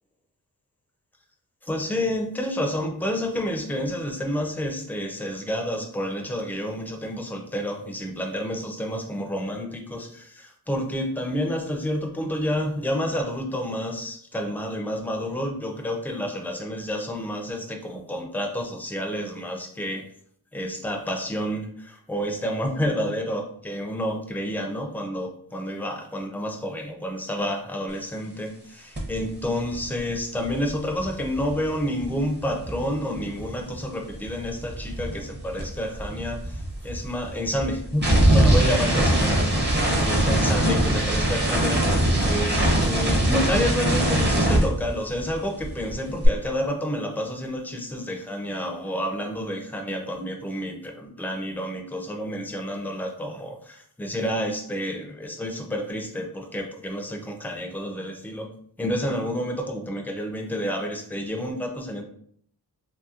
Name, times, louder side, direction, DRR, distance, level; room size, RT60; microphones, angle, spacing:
voice 1, 1.6-20.0 20.5-41.8 42.2-58.5 58.8-62.0, equal, 5° left, 1 dB, 0.4 m, -29 dB
sound 1, 29.0-29.2 29.4-33.8 34.1-45.4 45.6-46.3, right 1 dB, 25° right, 0.7 m, -23 dB
3.0 x 2.8 x 2.3 m, 0.64 s
wide cardioid pair, 110°, 40 cm